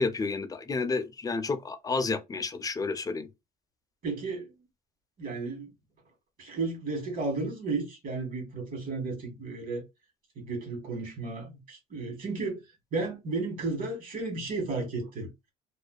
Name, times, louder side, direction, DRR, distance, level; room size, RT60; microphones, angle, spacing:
voice 1, 0.0-3.3, left 4 dB, 20° left, 0.4 m, -30 dB
voice 2, 4.0-4.6 5.2-5.7 6.4-9.9 10.3-12.6 12.9-15.3, right 3 dB, 55° right, 1.3 m, -33 dB
2.5 x 2.2 x 2.2 m
cardioid pair, 110°, 17 cm